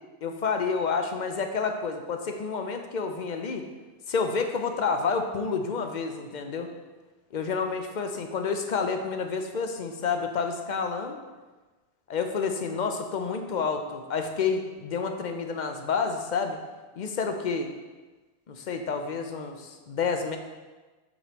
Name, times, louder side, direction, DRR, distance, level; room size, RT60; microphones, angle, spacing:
voice 1, 0.2-3.7 4.1-6.7 7.3-11.2 12.1-16.6 17.0-17.7 18.5-20.4, left 5 dB, 50° left, 6 dB, 0.6 m, -29 dB
7.3 x 3.1 x 5.0 m, 1.2 s
omnidirectional pair, 1.1 m